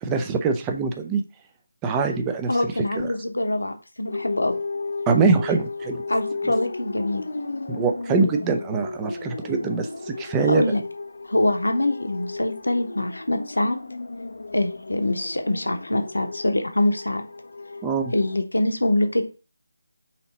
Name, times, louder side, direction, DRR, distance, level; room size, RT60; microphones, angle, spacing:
voice 1, 0.0-1.2 1.8-2.5 3.0-3.1 5.1-6.0 7.7-10.6 17.8-18.1, right 4 dB, 15° right, 5 dB, 0.4 m, -23 dB
voice 2, 2.5-4.6 6.1-7.2 10.5-10.8 11.2-13.8 14.5-17.2 18.1-19.2, left 1 dB, 90° left, 5 dB, 1.0 m, -24 dB
sound 1, 4.1-18.4, left 3 dB, 65° left, 0.5 m, -34 dB
4.2 x 2.9 x 4.0 m, 0.34 s
figure-of-eight pair, 165°, 0 cm